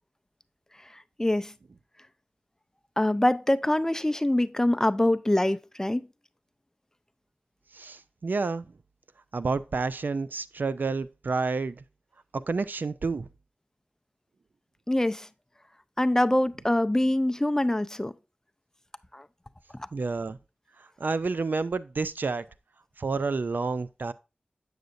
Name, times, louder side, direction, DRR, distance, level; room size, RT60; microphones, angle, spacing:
voice 1, 1.2-1.5 3.0-6.1 14.9-15.3 16.0-18.1 19.1-19.3, left 1 dB, 15° left, 0.4 m, -24 dB
voice 2, 7.7-8.7 9.3-11.8 12.3-13.3 19.9-20.4 21.0-22.4 23.0-24.1, right 4 dB, 70° right, 0.4 m, -29 dB
7.9 x 6.4 x 2.5 m
wide cardioid pair, 55°, 3 cm